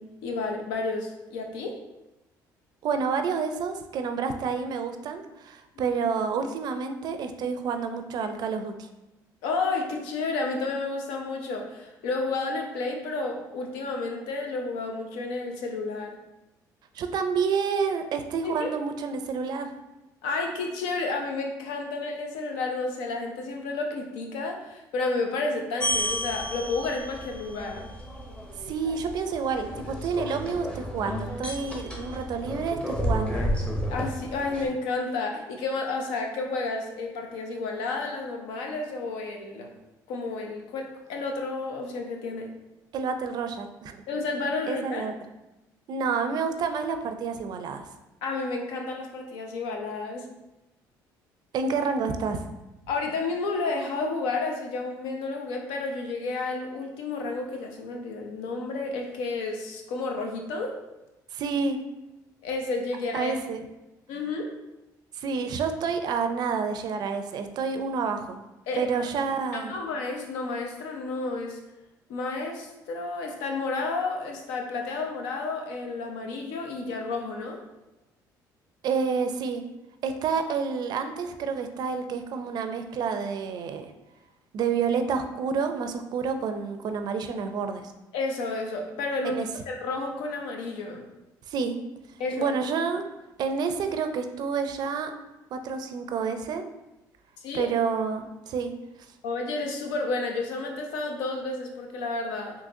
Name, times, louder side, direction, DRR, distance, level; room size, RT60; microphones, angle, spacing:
voice 1, 0.0-1.8 5.8-5.9 9.4-16.2 18.4-18.7 20.2-27.9 33.9-39.7 40.1-42.5 44.1-45.1 48.2-50.3 52.9-60.8 62.4-63.3 64.1-64.5 68.7-68.8 69.5-71.6 72.1-77.6 88.1-91.0 92.2-92.5 97.4-97.7 99.2-102.5, left 3 dB, 90° left, 2 dB, 0.6 m, -31 dB
voice 2, 2.8-8.7 16.9-19.7 28.6-33.4 42.9-44.0 44.7-45.1 45.9-47.9 51.5-52.4 61.3-61.8 63.1-63.6 65.1-68.4 68.8-69.7 78.8-79.6 80.0-83.9 84.5-87.9 89.2-89.5 91.5-91.8 92.4-93.0 93.4-95.1 95.5-96.6 97.5-98.7, right 5 dB, 60° right, 7 dB, 0.4 m, -29 dB
sound 1, 25.8-34.7, equal, 10° left, 0.7 m, -32 dB
3.7 x 2.8 x 2.6 m, 0.98 s
cardioid pair, 90°, 8 cm